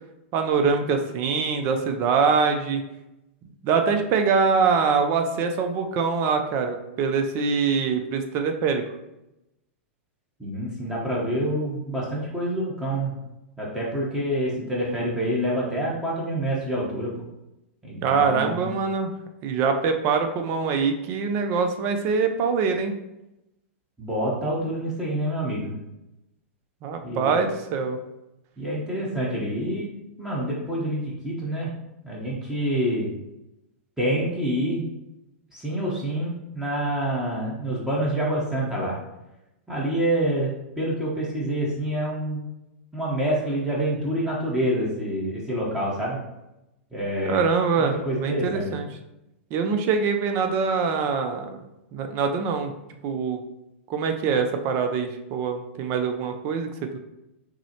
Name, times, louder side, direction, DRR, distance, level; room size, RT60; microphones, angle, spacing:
voice 1, 0.3-2.8 3.6-8.8 18.0-19.1 19.4-22.9 26.8-28.0 47.3-48.9 49.5-51.6 51.9-52.7 53.0-53.4 53.9-57.0, right 5 dB, 40° right, 6 dB, 0.5 m, -24 dB
voice 2, 10.4-13.1 13.6-17.2 17.8-18.7 24.0-25.8 27.0-27.4 28.6-29.9 30.2-31.7 32.0-33.1 34.0-34.8 35.5-39.0 39.7-42.4 42.9-46.2 46.9-47.4 47.8-48.7, right 1 dB, 5° right, -5 dB, 0.9 m, -27 dB
6.0 x 2.1 x 2.8 m, 0.92 s
hypercardioid pair, 130°, 7 cm